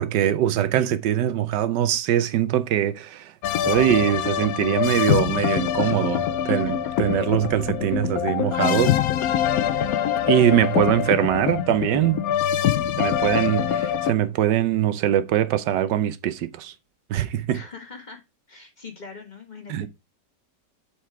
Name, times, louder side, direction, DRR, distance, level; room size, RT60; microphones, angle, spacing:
voice 1, 0.0-3.3 3.6-9.0 10.3-12.2 13.0-16.7 17.1-17.6 19.7-19.9, right 11 dB, 80° right, 1.3 m, -22 dB
sound 1, 3.4-14.1, left 10 dB, 70° left, 0.9 m, -24 dB
voice 2, 6.5-6.9 13.0-13.8 17.5-18.2 18.5-19.9, left 5 dB, 25° left, 1.6 m, -42 dB
7.6 x 4.9 x 4.7 m
omnidirectional pair, 1.9 m